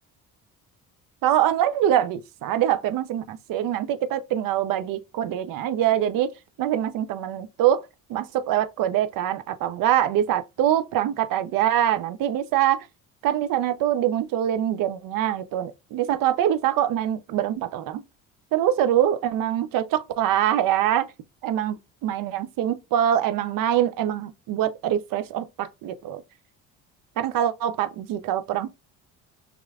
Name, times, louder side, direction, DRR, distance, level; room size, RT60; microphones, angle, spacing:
voice 1, 1.2-6.3 6.6-7.8 8.1-12.9 13.2-18.0 18.5-21.1 21.4-21.8 22.0-26.2 27.2-28.7, right 11 dB, 55° right, 0.6 m, -24 dB
3.6 x 3.1 x 2.3 m
hypercardioid pair, 65°, 41 cm